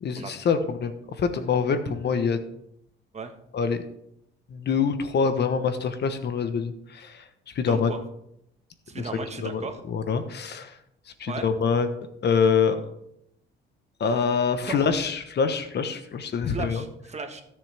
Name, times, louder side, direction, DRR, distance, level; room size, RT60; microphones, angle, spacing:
voice 1, 0.0-0.9 1.2-2.4 3.5-3.8 4.5-7.2 7.5-7.9 9.4-9.6 9.9-10.7 11.2-11.9 12.2-12.8 14.0-16.8, left 6 dB, 60° left, 9 dB, 1.2 m, -25 dB
voice 2, 7.6-8.0 8.9-9.8 11.3-11.5 14.7-14.9 16.5-17.4, right 4 dB, 35° right, 5 dB, 1.5 m, -35 dB
16.0 x 7.0 x 3.5 m, 0.77 s
cardioid pair, 90°, 20 cm